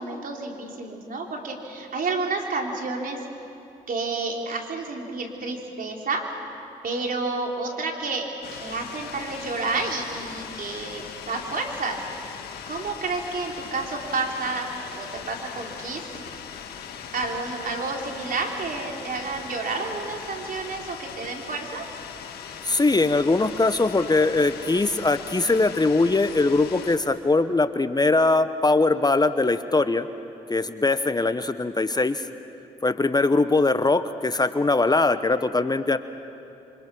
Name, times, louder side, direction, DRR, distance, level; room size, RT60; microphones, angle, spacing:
voice 1, 0.0-3.2 3.9-6.2 6.8-12.0 12.7-16.0 17.1-21.9, right 3 dB, 60° right, 1 dB, 4.0 m, -30 dB
sound 1, 8.4-27.0, left 7 dB, 80° left, 1.7 m, -39 dB
voice 2, 22.6-30.1 30.5-32.3 32.8-36.0, left 3 dB, 25° left, 12 dB, 1.1 m, -21 dB
28.5 x 25.0 x 6.3 m, 2.8 s
supercardioid pair, 50°, 16 cm